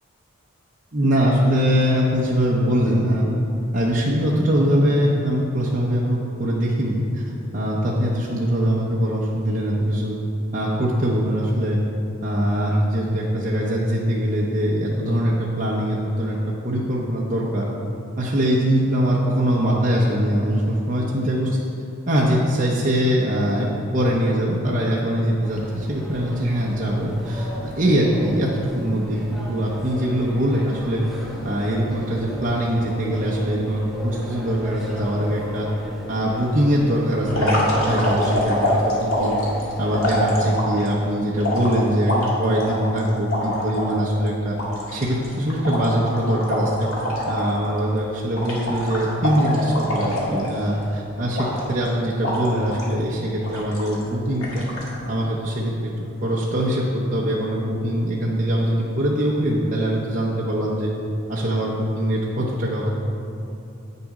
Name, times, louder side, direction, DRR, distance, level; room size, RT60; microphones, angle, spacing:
voice 1, 0.9-3.3 3.7-7.2 7.5-10.1 10.5-11.8 12.2-16.4 16.6-17.7 18.2-21.6 22.1-23.7 23.9-31.0 31.4-35.7 36.1-39.4 39.8-42.1 42.4-44.6 44.9-46.9 47.3-54.7 55.1-55.9 56.2-60.9 61.3-63.0, equal, 40° right, -4 dB, 0.8 m, -22 dB
sound 1, 25.4-40.4, equal, ahead, 1.1 m, -37 dB
sound 2, 37.3-40.9 41.4-43.9 44.3-44.4 44.6-47.5 47.8-48.0 48.3-50.8 51.3-51.9 52.2-52.9 53.4-54.0 54.4-54.9, left 1 dB, 80° left, 2.0 m, -25 dB
8.0 x 6.8 x 4.8 m, 2.8 s
head